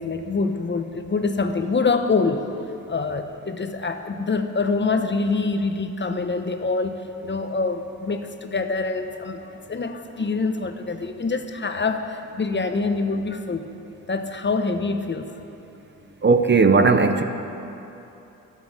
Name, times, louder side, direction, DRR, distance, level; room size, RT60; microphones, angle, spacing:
voice 1, 0.0-2.5 2.9-13.7 14.1-15.4, left 4 dB, 30° left, 7 dB, 0.9 m, -25 dB
voice 2, 16.2-17.2, right 4 dB, 30° right, 8 dB, 0.8 m, -16 dB
12.0 x 7.7 x 8.8 m, 2.9 s
supercardioid pair, 60°, 36 cm